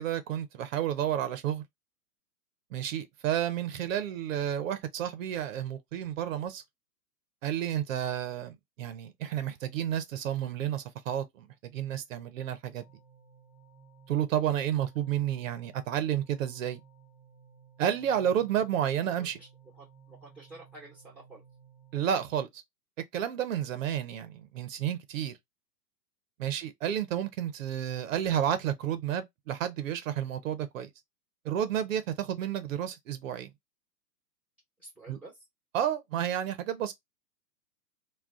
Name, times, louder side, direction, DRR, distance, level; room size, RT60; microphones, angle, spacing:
voice 1, 0.0-1.6 2.7-6.6 7.4-11.5 11.7-12.8 14.1-16.8 17.8-19.4 21.9-22.6 23.1-25.4 26.4-30.9 31.4-33.5 35.1-35.2 35.7-36.9, right 10 dB, 50° right, 0.7 m, -31 dB
sound 1, 12.8-22.0, right 6 dB, 65° left, 1.2 m, -57 dB
voice 2, 19.7-21.4 26.4-26.6 34.8-35.4, right 2 dB, ahead, 0.9 m, -51 dB
2.3 x 2.2 x 3.6 m
figure-of-eight pair, 120°, 49 cm